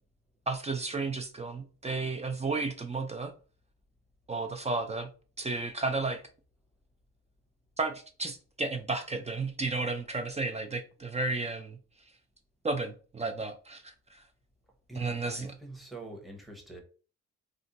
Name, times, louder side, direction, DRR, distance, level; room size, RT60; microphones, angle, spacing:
voice 1, 0.5-3.3 4.3-5.1 5.4-6.2 7.8-11.8 12.6-14.2 14.9-15.5, right 3 dB, 20° right, 0.4 m, -33 dB
voice 2, 14.9-16.8, right 2 dB, ahead, 0.9 m, -43 dB
2.5 x 2.2 x 3.9 m
cardioid pair, 90°, 30 cm